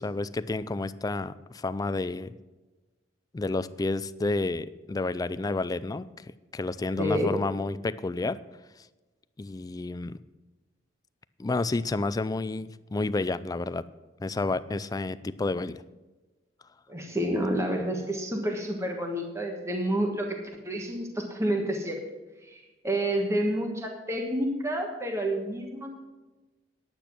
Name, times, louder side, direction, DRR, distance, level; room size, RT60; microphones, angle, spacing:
voice 1, 0.0-2.3 3.3-6.2 6.5-8.4 9.4-10.2 11.4-13.8 14.2-15.8, left 3 dB, 20° left, 15 dB, 0.3 m, -30 dB
voice 2, 7.0-7.3 16.9-20.4 20.6-22.0 22.5-26.0, right 1 dB, 15° right, 2 dB, 1.3 m, -29 dB
10.0 x 8.9 x 6.0 m, 1.2 s
head